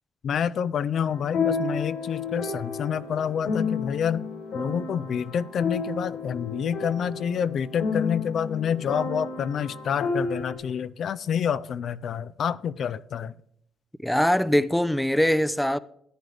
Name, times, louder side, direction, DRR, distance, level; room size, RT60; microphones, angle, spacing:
voice 1, 0.2-4.3 4.5-13.3, left 8 dB, 60° left, 0.4 m, -28 dB
sound 1, 1.1-10.6, left 4 dB, 85° left, 3.0 m, -31 dB
voice 2, 14.0-15.8, equal, 5° left, 0.5 m, -22 dB
14.0 x 9.1 x 3.4 m
cardioid pair, 90°, 0 cm